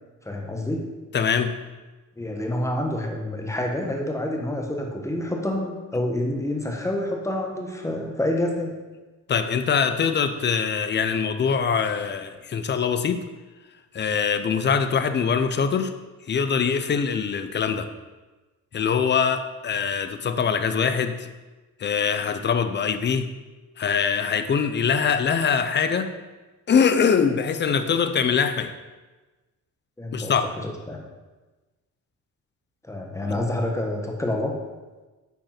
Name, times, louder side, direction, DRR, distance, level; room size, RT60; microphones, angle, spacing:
voice 1, 0.2-0.8 2.2-8.7 30.0-31.0 32.9-34.6, left 1 dB, 10° left, 1 dB, 1.3 m, -28 dB
voice 2, 1.1-1.6 9.3-13.3 13.9-15.9 16.3-17.9 18.7-21.3 21.8-23.3 23.8-26.1 26.7-28.7 30.1-30.4, left 6 dB, 35° left, 9 dB, 0.6 m, -23 dB
9.0 x 5.3 x 5.9 m, 1.2 s
cardioid pair, 155°, 32 cm